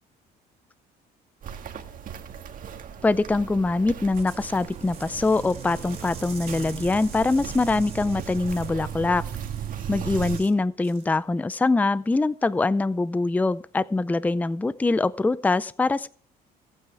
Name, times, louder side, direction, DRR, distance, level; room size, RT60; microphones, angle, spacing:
Walk footsteps, 1.4-10.4, right 9 dB, 55° right, 1.8 m, -36 dB
voice 1, 3.0-9.2 9.9-16.1, left 3 dB, 10° left, 16 dB, 0.5 m, -23 dB
sound 1, 3.9-10.6 10.8-11.2, right 6 dB, 35° right, 3.3 m, -46 dB
25.0 x 9.0 x 3.4 m, 0.43 s
cardioid pair, 110°, 17 cm